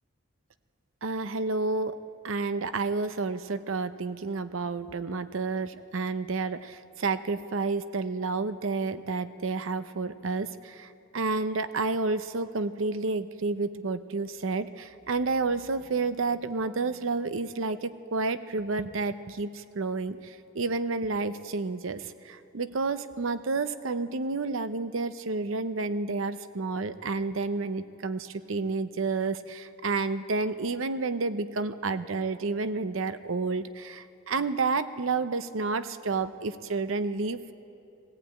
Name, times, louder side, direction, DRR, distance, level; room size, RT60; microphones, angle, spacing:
voice 1, 1.0-2.0 2.2-10.9 11.1-37.5, right 3 dB, 70° right, 12 dB, 0.7 m, -30 dB
20.5 x 15.0 x 8.9 m, 2.7 s
head